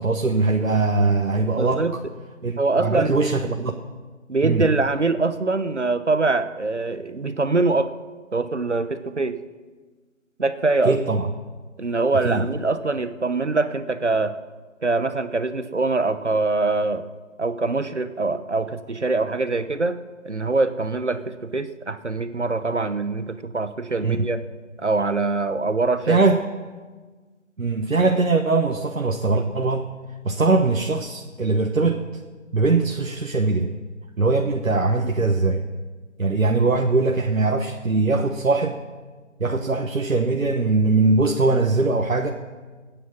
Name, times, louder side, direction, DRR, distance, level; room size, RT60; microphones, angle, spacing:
voice 1, 0.0-1.8 2.4-3.8 4.4-4.7 10.8-11.3 12.2-12.5 24.0-24.3 26.0-26.4 27.6-29.9 30.2-32.0 32.5-33.7 34.2-35.6 36.2-38.8 39.4-42.3, right 3 dB, 80° right, 3 dB, 1.3 m, -21 dB
voice 2, 1.5-2.0 2.6-3.2 4.3-7.9 8.3-9.4 10.4-11.0 11.8-14.4 14.8-17.1 17.4-20.0 20.2-24.4 24.8-26.2 39.5-39.8, right 3 dB, 60° right, 12 dB, 0.9 m, -23 dB
15.0 x 9.4 x 7.4 m, 1.4 s
figure-of-eight pair, 180°, 40 cm